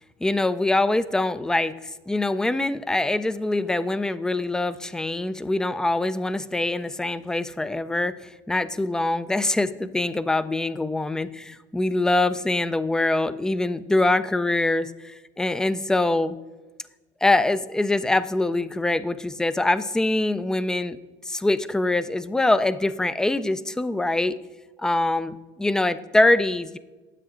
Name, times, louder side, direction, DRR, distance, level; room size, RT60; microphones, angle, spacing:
voice 1, 0.2-8.2 8.5-16.4 17.2-21.0 21.2-24.4 24.8-26.8, left 2 dB, 5° left, 15 dB, 0.4 m, -24 dB
9.8 x 7.6 x 3.7 m, 1.2 s
supercardioid pair, 115°, 12 cm